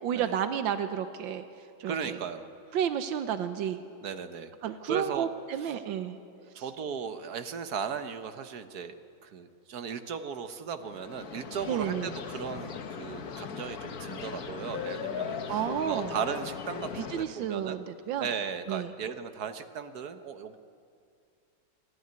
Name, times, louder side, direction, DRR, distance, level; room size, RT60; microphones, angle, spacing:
voice 1, 0.0-1.4 1.8-2.2 2.7-3.8 4.6-6.2 11.7-12.1 15.5-16.1 17.1-18.3 18.7-18.9, right 9 dB, 85° right, 10 dB, 1.6 m, -31 dB
voice 2, 1.9-2.5 4.0-4.5 4.9-5.3 5.6-5.8 6.5-8.9 9.2-17.8 18.2-20.6, right 6 dB, 60° right, 9 dB, 1.3 m, -36 dB
sound 1, 10.8-17.2, left 7 dB, 55° left, 1.4 m, -38 dB
28.0 x 10.5 x 9.5 m, 2.4 s
omnidirectional pair, 2.0 m